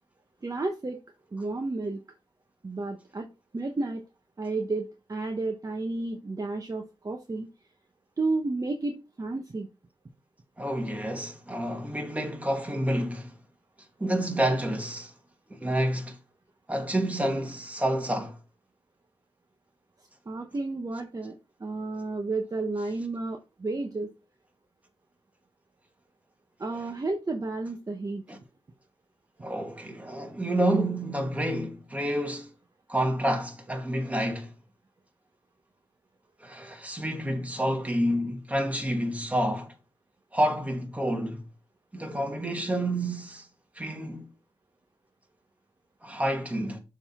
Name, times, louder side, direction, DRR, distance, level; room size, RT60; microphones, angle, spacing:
voice 1, 0.4-1.0 1.3-2.0 2.6-3.3 3.5-4.0 4.4-7.5 8.2-9.7 20.3-24.1 26.6-28.2, right 3 dB, 35° right, 1.0 m, -32 dB
voice 2, 10.6-13.4 14.0-15.1 15.5-16.2 16.7-18.4 28.3-28.4 29.4-32.5 32.9-34.5 36.4-39.7 40.3-41.5 41.9-43.5 43.8-44.3 46.0-46.8, right 1 dB, 15° right, 2.2 m, -29 dB
7.0 x 4.1 x 5.5 m
cardioid pair, 70°, 11 cm